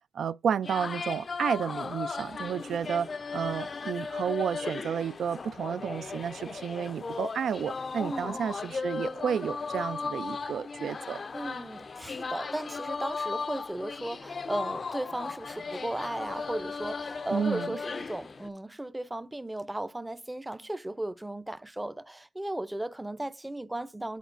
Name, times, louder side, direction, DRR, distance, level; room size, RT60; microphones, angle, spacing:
voice 1, 0.1-11.2 17.3-17.8, right 7 dB, 85° right, 0.3 m, -31 dB
sound 1, 0.6-18.5, left 4 dB, 45° left, 0.4 m, -36 dB
voice 2, 8.0-8.4 11.3-24.2, right 1 dB, 10° right, 0.5 m, -36 dB
10.0 x 4.1 x 2.5 m
cardioid pair, 100°, 0 cm